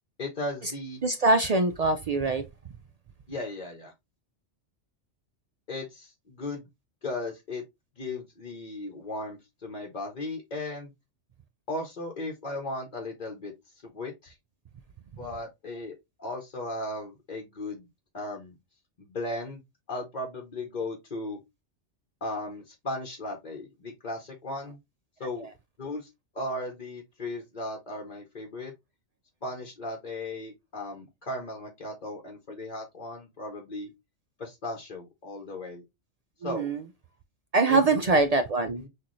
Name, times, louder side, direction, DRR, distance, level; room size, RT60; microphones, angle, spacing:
voice 1, 0.2-1.0 3.3-3.9 5.7-6.6 7.0-7.6 8.0-10.9 11.7-14.4 15.2-15.9 16.2-17.9 18.1-18.6 19.0-19.6 19.9-21.4 22.2-24.8 25.2-25.5 25.8-26.1 26.3-28.7 29.4-33.9 34.4-35.8 36.4-36.7 37.7-38.2 38.8-38.9, left 2 dB, 45° left, 1.0 m, -36 dB
voice 2, 1.0-2.4 36.4-36.8 37.5-38.8, right 3 dB, 65° right, 0.3 m, -23 dB
6.3 x 2.5 x 3.1 m
omnidirectional pair, 1.2 m